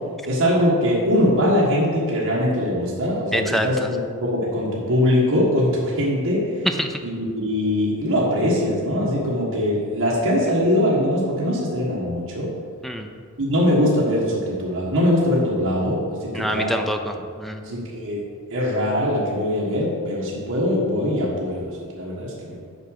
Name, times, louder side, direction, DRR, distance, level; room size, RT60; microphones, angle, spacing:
voice 1, 0.2-6.7 7.0-12.5 13.4-16.7 17.6-18.2 18.5-22.6, left 1 dB, 65° right, -6 dB, 1.5 m, -22 dB
voice 2, 3.3-3.9 6.6-7.0 12.8-13.1 16.3-17.6, equal, ahead, 5 dB, 0.5 m, -25 dB
6.8 x 4.9 x 6.5 m, 2.1 s
head